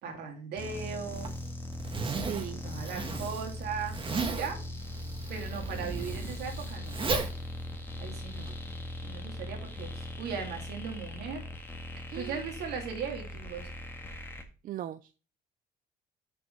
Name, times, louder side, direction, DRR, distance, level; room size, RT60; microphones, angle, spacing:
voice 1, 0.0-1.3 2.6-4.6 5.3-7.0 8.0-8.5 9.0-11.4 12.1-13.7, right 6 dB, 75° right, 2 dB, 2.9 m, -38 dB
sound 1, 0.6-14.4, left 1 dB, 15° left, 1.7 m, -40 dB
Zipper (clothing), 1.1-8.5, right 4 dB, 30° right, 1.7 m, -36 dB
voice 2, 2.0-2.6 12.1-12.4 14.6-15.0, right 12 dB, 55° right, 12 dB, 0.5 m, -39 dB
6.8 x 5.9 x 5.5 m, 0.35 s
cardioid pair, 110°, 17 cm